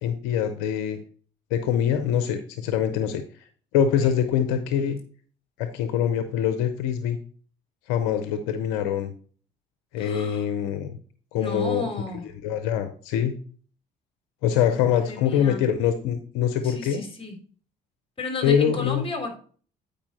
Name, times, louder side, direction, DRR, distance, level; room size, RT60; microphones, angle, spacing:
voice 1, 0.0-1.0 1.5-3.2 3.7-5.0 5.6-7.2 7.9-9.1 9.9-10.9 11.3-11.9 12.4-13.3 14.4-17.1 18.4-19.0, left 8 dB, 80° left, 0.8 m, -24 dB
voice 2, 10.0-10.5 11.3-12.3 14.5-15.7 16.6-17.4 18.2-19.3, left 3 dB, 25° left, 3.4 m, -34 dB
8.7 x 5.3 x 4.2 m
hypercardioid pair, 60°, 21 cm